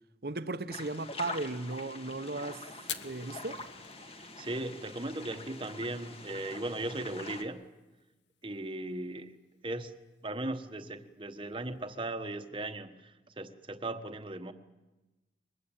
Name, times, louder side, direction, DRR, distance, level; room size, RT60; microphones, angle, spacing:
voice 1, 0.2-2.7 3.0-3.6, right 2 dB, 60° right, 1.0 m, -36 dB
sound 1, 0.7-7.4, left 2 dB, 35° left, 1.8 m, -45 dB
Fire, 2.8-12.0, left 9 dB, 85° left, 1.3 m, -51 dB
voice 2, 4.1-7.7 8.4-9.4 9.6-9.9 10.2-14.5, right 2 dB, 30° right, 1.3 m, -38 dB
23.5 x 21.0 x 8.9 m
head